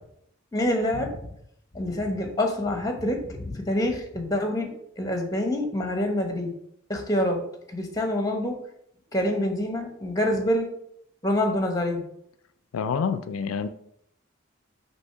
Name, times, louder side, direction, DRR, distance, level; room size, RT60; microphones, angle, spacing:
voice 1, 0.5-1.3 1.7-4.7 5.0-6.5 6.9-7.4 7.7-8.6 9.1-10.7 11.2-12.0, left 1 dB, 15° left, 4 dB, 1.0 m, -26 dB
voice 2, 12.7-13.7, left 6 dB, 85° left, 10 dB, 0.4 m, -27 dB
6.2 x 2.9 x 5.7 m, 0.73 s
head